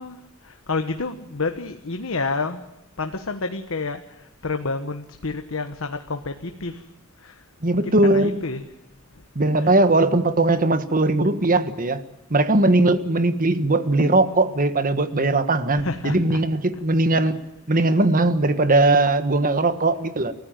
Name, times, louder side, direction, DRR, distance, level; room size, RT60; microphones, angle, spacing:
voice 1, 0.0-2.6 3.0-6.9 7.2-7.4 7.7-8.7 9.1-9.2 9.6-9.8 15.7-16.4 17.7-18.0, left 3 dB, 65° left, 7 dB, 1.3 m, -30 dB
voice 2, 7.6-8.4 9.3-12.0 12.3-17.4 17.7-20.3, right 2 dB, 40° right, 11 dB, 1.5 m, -19 dB
30.0 x 14.5 x 9.0 m, 0.91 s
head